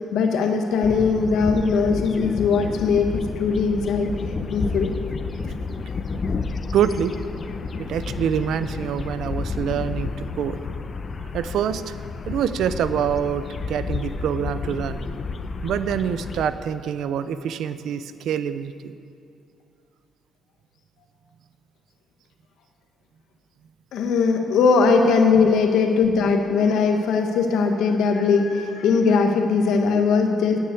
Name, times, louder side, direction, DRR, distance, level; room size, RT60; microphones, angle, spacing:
voice 1, 0.0-4.1 4.5-4.9 23.9-30.6, left 5 dB, 80° left, 4 dB, 1.3 m, -20 dB
sound 1, 0.8-16.5, left 4 dB, 45° left, 0.8 m, -31 dB
voice 2, 6.7-7.1 7.9-10.6 11.3-15.0 15.6-18.9, right 8 dB, 75° right, 12 dB, 0.6 m, -26 dB
9.7 x 9.3 x 8.4 m, 2.6 s
cardioid pair, 90°, 0 cm